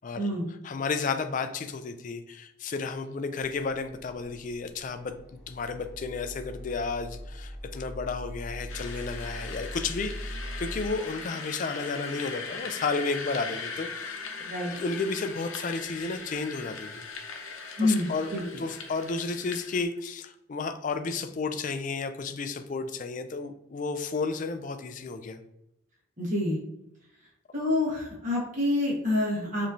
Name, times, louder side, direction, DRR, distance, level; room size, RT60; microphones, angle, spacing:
voice 1, 0.6-5.2 5.5-14.2 14.7-17.0 17.8-25.4, left 4 dB, 40° left, 9 dB, 0.3 m, -32 dB
sound 1, 3.4-10.9, equal, 10° right, 0.9 m, -41 dB
sound 2, 8.7-19.8, left 4 dB, 75° left, 0.7 m, -40 dB
voice 2, 17.8-18.4 26.2-26.6 27.5-29.7, left 1 dB, 40° right, -4 dB, 1.4 m, -27 dB
5.1 x 3.0 x 2.7 m, 0.85 s
head